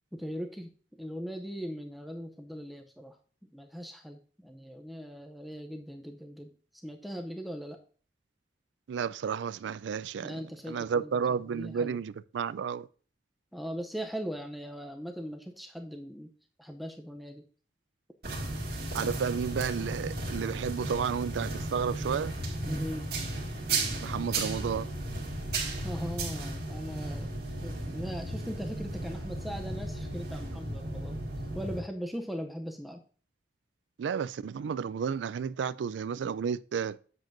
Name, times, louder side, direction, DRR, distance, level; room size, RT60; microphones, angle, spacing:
voice 1, 0.1-3.2 3.5-6.5 6.8-7.8 10.2-12.0 13.5-16.3 16.6-17.5 22.6-23.1 25.8-27.3 27.6-31.2 31.5-33.0, equal, ahead, 0.5 m, -39 dB
voice 2, 8.9-10.4 10.7-12.9 18.9-22.3 24.0-24.9 34.0-37.0, right 6 dB, 85° right, 0.3 m, -32 dB
sound 1, 18.2-31.8, right 2 dB, 60° right, 2.0 m, -35 dB
7.5 x 7.5 x 2.5 m
head